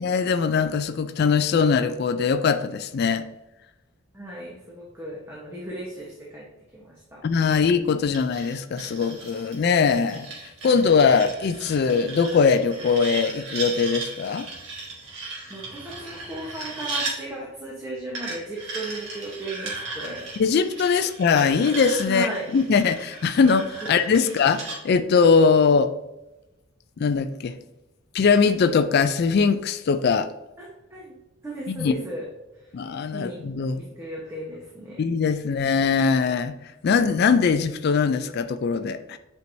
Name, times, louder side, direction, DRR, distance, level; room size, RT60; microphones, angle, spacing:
voice 1, 0.0-3.2 7.2-10.3 10.6-14.5 20.4-25.9 27.0-27.6 28.1-30.3 31.7-31.9 32.7-33.8 35.0-36.5 36.8-39.2, left 5 dB, 50° left, 10 dB, 0.3 m, -21 dB
voice 2, 4.1-6.5 6.7-7.2 15.5-20.3 22.1-22.5 30.6-31.2 31.4-32.2 32.5-32.7 33.1-33.4 33.7-35.0, right 1 dB, 10° right, -5 dB, 1.0 m, -36 dB
sound 1, 8.1-17.2 18.1-24.8, right 3 dB, 60° right, 2.0 m, -36 dB
8.2 x 4.5 x 2.7 m, 0.95 s
head